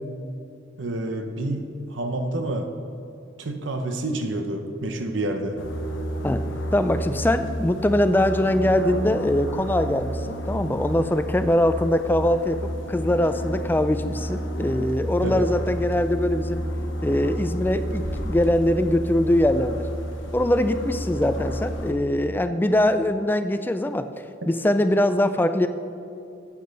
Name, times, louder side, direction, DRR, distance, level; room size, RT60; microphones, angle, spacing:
voice 1, 0.8-2.7 3.4-5.6 15.2-15.5, right 1 dB, 75° right, 6 dB, 0.8 m, -28 dB
sound 1, 5.6-21.9, equal, 80° left, 1.0 m, -31 dB
voice 2, 6.2-16.6 17.0-19.9 20.3-24.1 24.5-25.7, left 1 dB, 10° left, 10 dB, 0.3 m, -22 dB
11.5 x 8.5 x 4.0 m, 2.6 s
head